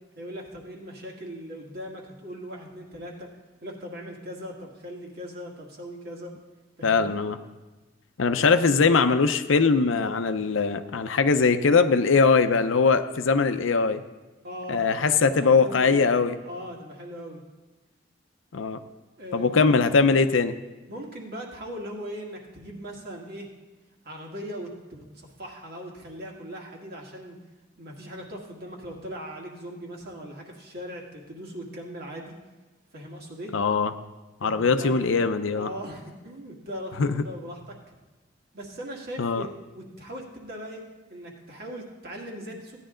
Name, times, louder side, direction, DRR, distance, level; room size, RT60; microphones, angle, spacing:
voice 1, 0.2-3.3 3.6-6.3 6.8-7.1 14.4-16.2 16.4-17.4 19.2-20.2 20.9-23.5 24.0-27.4 27.8-32.4 32.9-33.6 34.4-35.0 35.5-37.9 38.5-39.5 39.7-42.8, equal, 55° right, 0 dB, 1.9 m, -39 dB
voice 2, 6.8-7.4 8.2-14.0 14.7-16.4 18.5-18.8 19.3-20.6 33.5-33.9 34.4-35.7 37.0-37.2 39.2-39.5, left 4 dB, 90° left, 9 dB, 0.6 m, -21 dB
15.5 x 9.9 x 3.8 m, 1.2 s
head